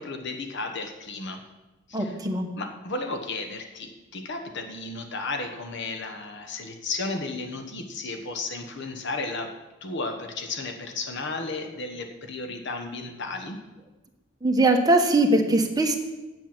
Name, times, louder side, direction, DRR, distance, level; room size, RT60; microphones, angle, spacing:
voice 1, 0.0-1.4 1.9-2.2 2.5-13.6, left 3 dB, 65° left, 5 dB, 1.2 m, -34 dB
voice 2, 1.9-2.5 14.4-16.0, right 2 dB, 20° right, 3 dB, 1.2 m, -21 dB
7.8 x 7.7 x 7.3 m, 1.1 s
head